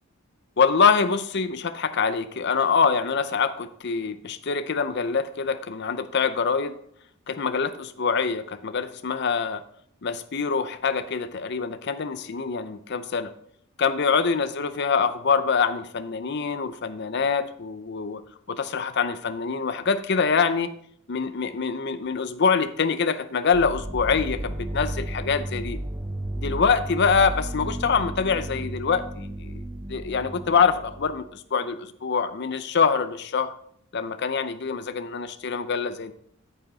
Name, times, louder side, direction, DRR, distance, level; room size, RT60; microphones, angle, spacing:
voice 1, 0.6-6.7 7.3-9.6 10.0-13.3 13.8-18.2 18.5-20.7 21.1-25.8 26.4-29.6 29.9-33.5 33.9-36.1, left 5 dB, 50° left, 11 dB, 0.6 m, -25 dB
sound 1, 23.5-31.3, right 1 dB, 10° right, 0.5 m, -33 dB
9.0 x 7.8 x 4.0 m, 0.67 s
head